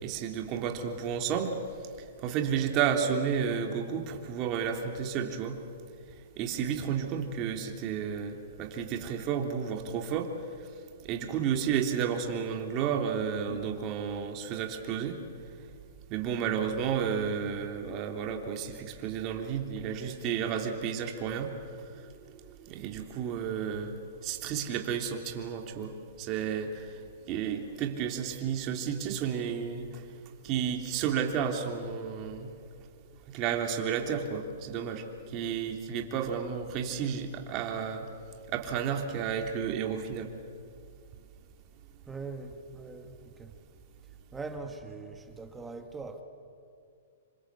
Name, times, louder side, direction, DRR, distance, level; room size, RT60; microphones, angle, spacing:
voice 1, 0.0-1.5 2.2-5.6 6.4-10.3 11.1-15.2 16.1-21.5 22.7-24.0 24.2-26.8 27.3-29.9 30.4-32.5 33.3-35.0 35.3-38.1 38.5-40.3, right 7 dB, 35° right, 4 dB, 3.2 m, -32 dB
voice 2, 16.3-16.6 42.1-43.5 44.3-46.2, right 3 dB, 10° right, 6 dB, 1.8 m, -42 dB
27.0 x 25.0 x 8.5 m, 2.4 s
hypercardioid pair, 140°, 0 cm